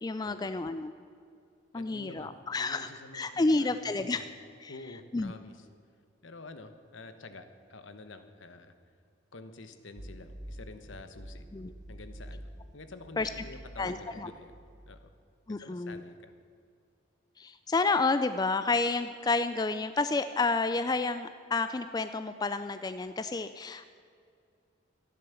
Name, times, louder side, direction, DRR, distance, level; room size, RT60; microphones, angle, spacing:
voice 1, 0.0-0.9 1.7-2.9 3.1-4.3 4.6-4.7 5.1-5.3 11.5-11.7 13.2-13.3 13.8-14.3 15.5-16.0 17.4-23.9, left 3 dB, 20° left, 11 dB, 0.3 m, -30 dB
voice 2, 1.7-4.3 4.7-5.7 6.2-8.7 9.3-11.4 11.9-14.6 14.8-15.1 15.5-16.3, left 2 dB, 75° left, 9 dB, 1.1 m, -48 dB
sound 1, 10.0-15.1, equal, 40° right, 0.8 m, -47 dB
14.0 x 11.0 x 7.0 m, 2.4 s
head